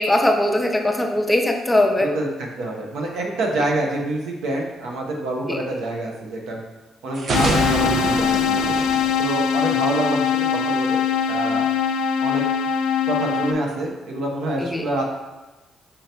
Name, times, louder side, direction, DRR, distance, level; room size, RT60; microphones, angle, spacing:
voice 1, 0.0-2.1 5.5-5.6 14.6-14.8, left 1 dB, 10° left, 3 dB, 0.5 m, -20 dB
voice 2, 2.0-6.6 7.0-8.7 9.2-11.0 11.3-11.7 12.2-12.4 13.1-15.0, right 2 dB, 80° right, 0 dB, 0.8 m, -27 dB
sound 1, 7.1-10.0, right 2 dB, 55° right, 0.6 m, -25 dB
sound 2, 7.3-13.5, left 7 dB, 90° left, 0.3 m, -22 dB
5.4 x 2.9 x 3.3 m, 1.1 s
cardioid pair, 90°, 0 cm